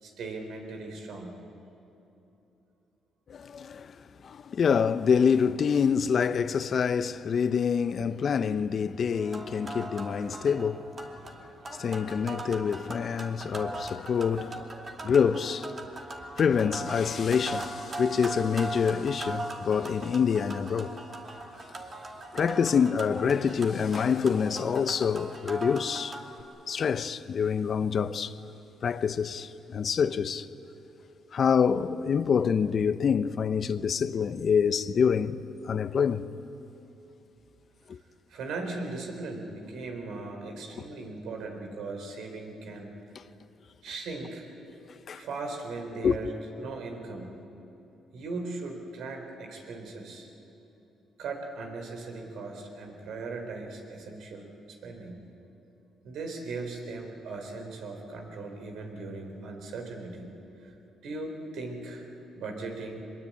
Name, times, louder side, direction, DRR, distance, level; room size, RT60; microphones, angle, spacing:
voice 1, 0.0-1.3 38.3-42.9 43.8-44.5 45.1-46.3 46.6-47.3 48.1-50.3 51.2-55.2 56.0-60.3 60.6-60.7 61.0-63.0, right 3 dB, 75° right, 3.9 m, -38 dB
voice 2, 3.3-3.9 4.2-10.9 11.8-14.6 15.0-15.7 16.4-20.9 22.3-26.2 26.7-28.3 28.8-30.5 31.3-36.3 37.9-38.0 45.1-45.2 46.0-46.2, left 6 dB, 55° left, 0.9 m, -26 dB
sound 1, 9.1-26.4, right 2 dB, 40° right, 2.7 m, -40 dB
23.5 x 21.5 x 8.6 m
cardioid pair, 75°, 0 cm